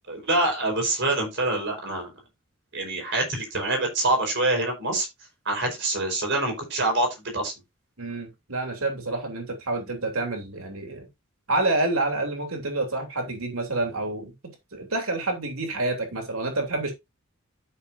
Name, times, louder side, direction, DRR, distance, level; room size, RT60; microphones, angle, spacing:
voice 1, 0.1-2.1 2.7-5.1 5.4-7.5, right 2 dB, 60° right, 4.7 m, -25 dB
voice 2, 8.0-11.0 11.5-14.3 14.7-16.9, right 2 dB, 90° right, 3.1 m, -28 dB
12.5 x 6.2 x 2.7 m
head